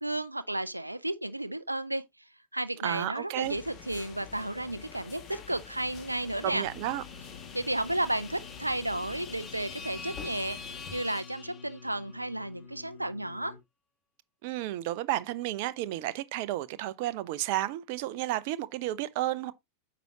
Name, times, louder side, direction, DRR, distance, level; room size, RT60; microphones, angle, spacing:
voice 1, 0.0-2.0 2.5-6.6 7.5-13.6, right 1 dB, 85° right, 0.5 m, -33 dB
voice 2, 2.8-3.6 6.4-7.0 14.4-19.5, right 14 dB, 45° right, 0.6 m, -32 dB
sound 1, 3.4-11.0, left 7 dB, 30° left, 1.9 m, -47 dB
sound 2, 4.2-12.2, left 4 dB, 15° left, 1.3 m, -47 dB
Singing, 6.4-13.6, left 5 dB, 65° left, 2.4 m, -50 dB
9.1 x 6.0 x 2.9 m
figure-of-eight pair, 90°, 0 cm